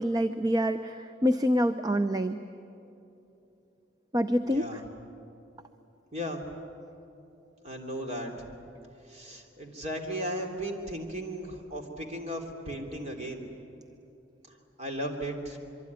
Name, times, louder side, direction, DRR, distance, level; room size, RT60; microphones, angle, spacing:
voice 1, 0.0-2.4 4.1-4.7, equal, 20° right, 9 dB, 0.6 m, -26 dB
voice 2, 4.4-4.8 6.1-6.4 7.6-8.4 9.0-13.4 14.5-15.6, equal, 35° right, 2 dB, 3.2 m, -36 dB
25.0 x 24.0 x 9.6 m, 2.9 s
head